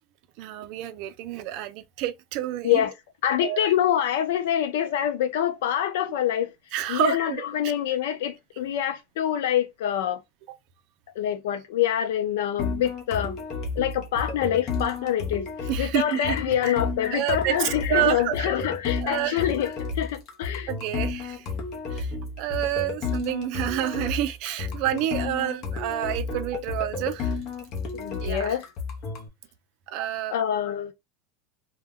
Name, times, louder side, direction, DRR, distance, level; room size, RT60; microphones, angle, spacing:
voice 1, 0.4-2.8 3.4-3.7 6.7-7.7 10.5-10.6 15.7-16.4 16.6-16.7 17.1-18.5 19.0-19.5 20.7-21.5 21.9-27.4 28.2-28.6 29.9-30.4, right 13 dB, 50° right, 0.4 m, -29 dB
voice 2, 3.2-6.5 6.9-10.2 11.2-13.4 13.8-15.5 15.8-19.7 20.0-20.7 27.9-28.6 30.3-30.9, left 10 dB, 80° left, 0.5 m, -25 dB
sound 1, 12.6-29.3, left 4 dB, 40° left, 0.7 m, -32 dB
2.1 x 2.1 x 3.5 m
supercardioid pair, 160°, 0 cm